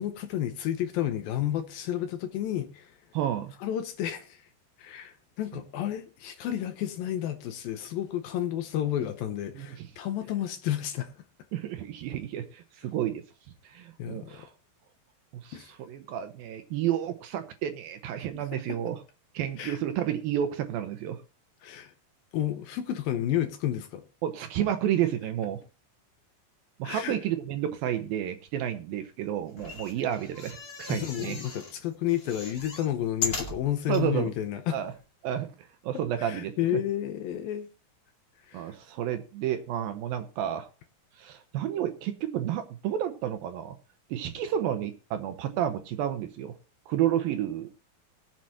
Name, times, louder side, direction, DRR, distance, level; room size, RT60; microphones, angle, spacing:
voice 1, 0.0-3.0 3.6-4.5 4.8-11.1 14.0-14.5 15.5-15.7 18.3-18.6 19.6-19.8 21.6-21.9 22.3-24.0 26.8-27.2 30.9-34.8 36.2-37.7 38.4-38.8, left 11 dB, 75° left, 2.4 m, -31 dB
voice 2, 3.1-3.5 9.6-9.9 11.5-13.2 13.6-14.5 15.4-19.0 19.3-21.2 24.2-25.6 26.8-31.4 33.9-34.3 34.7-34.9 35.2-35.5 35.8-36.5 38.5-40.7 41.2-43.8 44.1-46.6 46.9-47.7, right 10 dB, 75° right, 2.3 m, -31 dB
sound 1, 29.5-31.7 32.1-34.0 34.6-34.7 34.9-35.0, left 4 dB, 30° left, 2.0 m, -37 dB
20.5 x 7.5 x 2.8 m
omnidirectional pair, 4.7 m